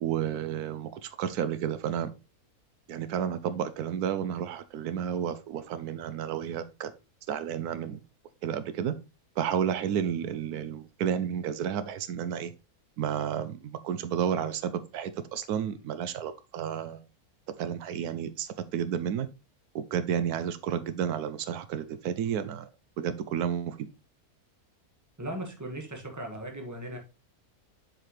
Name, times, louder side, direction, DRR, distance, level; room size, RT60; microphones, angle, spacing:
voice 1, 0.0-2.1 2.9-6.9 7.3-8.0 8.4-9.0 9.4-12.5 13.0-17.0 17.6-19.3 19.7-22.7 23.0-23.9, right 8 dB, 80° right, 1.1 m, -31 dB
voice 2, 25.2-27.0, right 1 dB, 10° right, 1.4 m, -37 dB
7.5 x 4.8 x 3.1 m
omnidirectional pair, 1.6 m